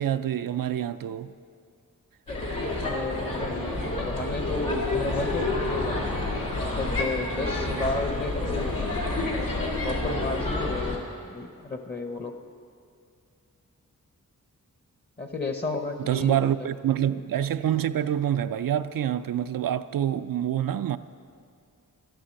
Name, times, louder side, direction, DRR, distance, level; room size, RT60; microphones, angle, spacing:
voice 1, 0.0-1.3 16.1-21.0, right 10 dB, 85° right, 0.5 m, -26 dB
sound 1, 2.3-11.0, left 2 dB, 85° left, 2.3 m, -29 dB
voice 2, 2.8-3.7 4.0-6.0 6.6-8.8 9.8-11.0 11.3-12.3 15.2-16.7, left 3 dB, 30° left, 0.8 m, -32 dB
13.0 x 11.5 x 6.5 m
wide cardioid pair, 115°, 33 cm